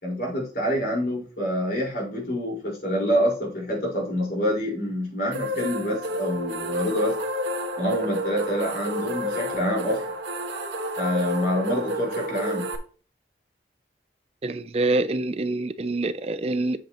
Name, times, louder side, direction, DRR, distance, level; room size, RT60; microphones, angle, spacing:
voice 1, 0.0-7.1 7.8-10.1 11.0-12.7, equal, 55° left, 4.5 m, -26 dB
sound 1, 5.3-12.8, equal, 80° right, 1.4 m, -30 dB
voice 2, 14.4-16.8, right 2 dB, 35° right, 0.4 m, -26 dB
8.2 x 7.0 x 3.0 m
head